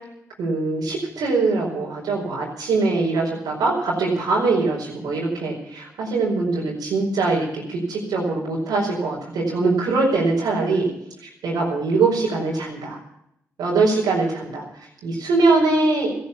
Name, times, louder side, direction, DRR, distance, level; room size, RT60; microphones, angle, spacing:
voice 1, 0.4-10.9 11.2-13.0 13.6-14.6 15.0-16.1, right 3 dB, 85° right, -5 dB, 5.0 m, -22 dB
15.0 x 10.5 x 8.5 m, 0.76 s
supercardioid pair, 45°, 7 cm